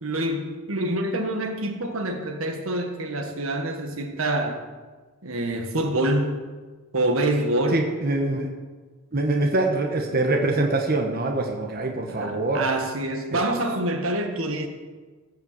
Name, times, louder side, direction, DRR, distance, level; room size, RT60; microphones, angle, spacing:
voice 1, 0.0-4.6 5.2-6.5 6.9-7.9 12.1-14.7, right 1 dB, 80° right, 4 dB, 1.5 m, -26 dB
voice 2, 7.7-8.5 9.1-12.6 13.3-13.4, right 2 dB, 45° right, 2 dB, 1.2 m, -24 dB
15.0 x 5.7 x 7.5 m, 1.4 s
head